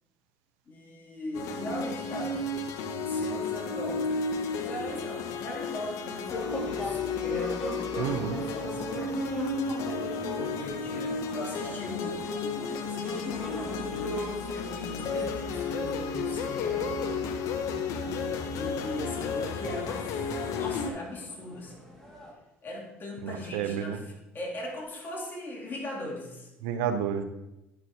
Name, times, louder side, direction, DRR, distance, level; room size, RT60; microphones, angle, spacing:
voice 1, 0.7-2.4 3.1-4.0 4.5-9.2 10.4-16.9 18.3-21.8 22.6-26.5, left 1 dB, 35° left, -3 dB, 2.7 m, -39 dB
sound 1, 1.3-20.9, left 4 dB, 65° left, 0.7 m, -32 dB
sound 2, 6.4-22.3, equal, 5° left, 2.1 m, -42 dB
voice 2, 8.0-8.4 23.2-24.0 26.6-27.2, right 8 dB, 75° right, 9 dB, 0.6 m, -30 dB
10.5 x 6.1 x 2.8 m, 0.96 s
hypercardioid pair, 65°, 6 cm